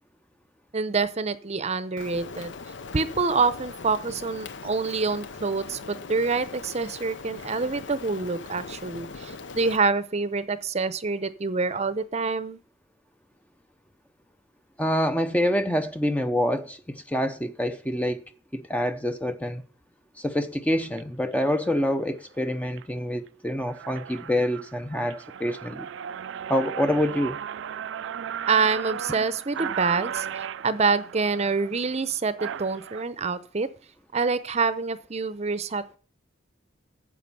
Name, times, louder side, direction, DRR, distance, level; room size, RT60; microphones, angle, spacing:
voice 1, 0.7-2.5 2.9-12.6 28.5-33.7 34.1-36.0, right 4 dB, 35° right, 0.6 m, -26 dB
Rain, 2.0-9.8, left 4 dB, 65° left, 0.7 m, -40 dB
voice 2, 14.8-18.2 18.5-19.6 20.2-25.9 26.5-27.4, equal, 10° left, 0.6 m, -26 dB
sound 1, 20.8-21.0 21.7-21.9 22.4-22.8 23.3-23.4 23.6-33.0, right 8 dB, 70° right, 0.4 m, -36 dB
9.7 x 7.1 x 5.5 m
head